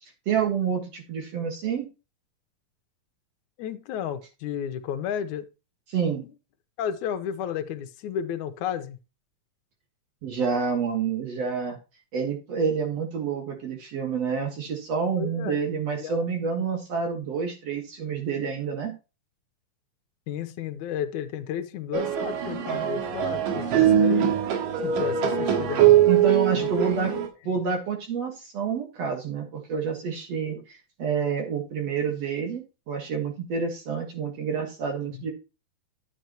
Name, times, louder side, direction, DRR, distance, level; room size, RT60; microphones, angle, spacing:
voice 1, 0.3-1.9 5.9-6.2 10.2-11.8 12.1-18.9 26.1-27.1 27.4-32.6 32.9-35.3, right 6 dB, 55° right, 2.5 m, -28 dB
voice 2, 3.6-5.5 6.8-9.0 15.2-15.7 16.0-16.2 16.5-16.6 20.3-24.4 24.8-26.0 26.5-26.7 27.1-27.2 35.1-35.3, left 9 dB, 75° left, 2.2 m, -33 dB
sound 1, 21.9-27.3, right 10 dB, 85° right, 3.3 m, -22 dB
10.5 x 8.1 x 2.9 m
omnidirectional pair, 3.8 m